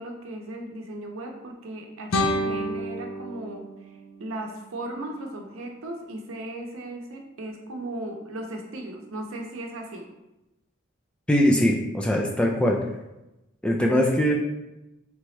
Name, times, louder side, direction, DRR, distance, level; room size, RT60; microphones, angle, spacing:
voice 1, 0.0-10.1, right 1 dB, 85° right, 2 dB, 0.6 m, -37 dB
sound 1, 2.1-5.1, left 1 dB, 75° left, 0.5 m, -30 dB
voice 2, 11.3-12.8 13.6-14.3, equal, 5° left, 0 dB, 0.3 m, -21 dB
3.4 x 2.9 x 3.1 m, 0.96 s
head